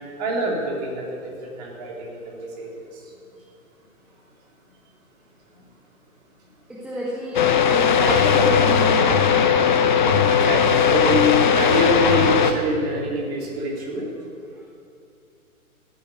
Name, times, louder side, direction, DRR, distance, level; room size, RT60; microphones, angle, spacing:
voice 1, 0.2-1.0 1.4-2.9 10.3-14.1, equal, 30° right, -1 dB, 3.0 m, -25 dB
voice 2, 6.8-9.6 14.6-14.7, equal, ahead, -7 dB, 1.1 m, -28 dB
sound 1, 7.3-12.5, left 7 dB, 35° left, 0.8 m, -18 dB
14.0 x 8.7 x 9.3 m, 2.4 s
figure-of-eight pair, 130°, 42 cm